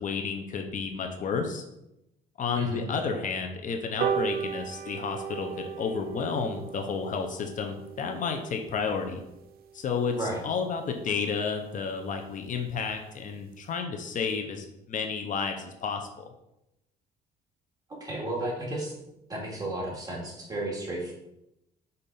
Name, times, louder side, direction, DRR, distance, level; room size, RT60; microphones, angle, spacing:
voice 1, 0.0-1.6 2.4-9.2 9.7-16.3, left 5 dB, 50° left, 4 dB, 0.9 m, -31 dB
voice 2, 2.5-2.8 10.2-10.4 17.9-18.9 19.3-21.1, right 1 dB, 20° right, -2 dB, 2.4 m, -33 dB
sound 1, 4.0-10.8 11.2-11.3 11.6-11.7 12.0-12.1 12.4-12.5 12.7-13.0 13.4-13.5, right 8 dB, 60° right, 0.6 m, -36 dB
5.7 x 4.0 x 5.5 m, 0.86 s
cardioid pair, 110°, 17 cm